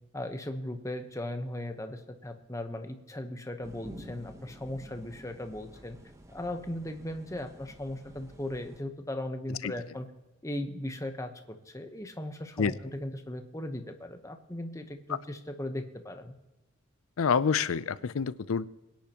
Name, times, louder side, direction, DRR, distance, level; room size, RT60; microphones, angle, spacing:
voice 1, 0.1-6.0 6.3-10.1 10.4-16.3, left 1 dB, 15° left, 6 dB, 1.0 m, -38 dB
sound 1, 3.6-8.8, equal, 15° right, 1.0 m, -50 dB
voice 2, 17.2-18.7, left 6 dB, 85° left, 17 dB, 0.5 m, -27 dB
22.5 x 10.5 x 3.0 m, 0.99 s
head